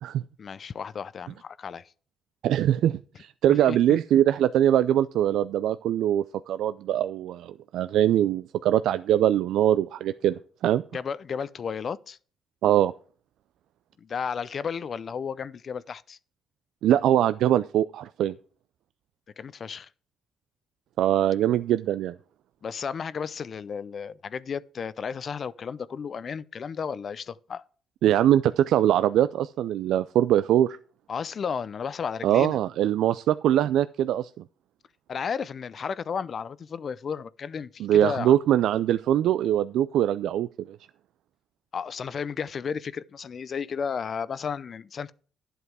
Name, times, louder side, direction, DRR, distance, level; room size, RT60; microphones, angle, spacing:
voice 1, 0.4-1.9 3.7-4.0 10.9-12.2 14.0-16.2 19.4-19.9 22.6-27.6 31.1-32.6 35.1-38.3 41.7-45.1, left 6 dB, 50° left, 0.6 m, -33 dB
voice 2, 2.4-10.8 12.6-12.9 16.8-18.3 21.0-22.1 28.0-30.8 32.2-34.3 37.8-40.8, right 11 dB, 80° right, 0.4 m, -22 dB
11.5 x 8.0 x 4.7 m
cardioid pair, 90°, 0 cm